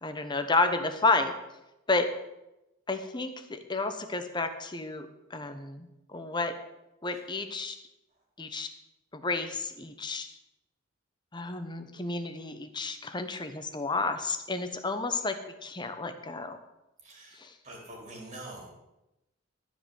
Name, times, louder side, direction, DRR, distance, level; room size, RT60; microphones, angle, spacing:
voice 1, 0.0-1.3 1.9-2.1 2.9-6.6 7.0-7.8 8.4-8.7 9.1-10.3 11.3-15.4 15.6-16.6 17.4-17.5, left 3 dB, 20° left, 8 dB, 0.9 m, -31 dB
voice 2, 17.0-18.7, right 1 dB, 35° right, -1 dB, 3.8 m, -45 dB
13.5 x 5.3 x 7.7 m, 0.93 s
head